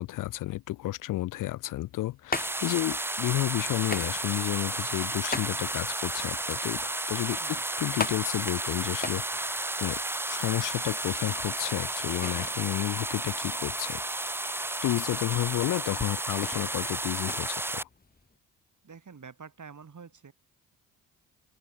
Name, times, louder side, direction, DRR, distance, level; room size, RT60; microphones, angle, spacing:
voice 1, 0.0-10.0 10.3-14.0 14.8-17.8, left 16 dB, 45° left, 0.4 m, -31 dB
logs being thrown into basket, 1.8-18.4, left 3 dB, 20° left, 1.9 m, -40 dB
sound 1, 2.3-17.8, right 2 dB, 5° right, 0.6 m, -32 dB
voice 2, 18.8-20.3, right 6 dB, 40° right, 5.0 m, -47 dB
open air
hypercardioid pair, 45°, 47 cm